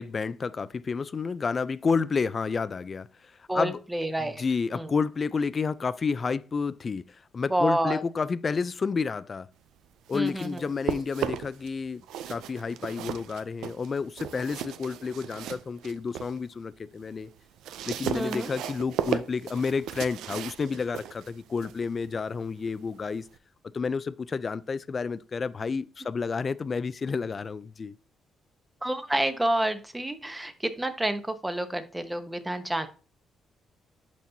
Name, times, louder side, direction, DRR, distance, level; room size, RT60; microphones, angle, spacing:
voice 1, 0.0-3.8 4.2-9.5 10.1-17.3 17.9-23.3 23.7-27.9, left 5 dB, 40° left, 0.4 m, -30 dB
voice 2, 3.5-4.4 4.7-4.9 7.5-8.0 10.1-10.6 18.1-18.5 28.8-32.9, right 1 dB, 10° right, 0.9 m, -29 dB
sound 1, 9.9-11.7 12.0-16.4 16.8-23.4, right 10 dB, 85° right, 0.4 m, -36 dB
10.5 x 4.3 x 2.7 m
cardioid pair, 90°, 0 cm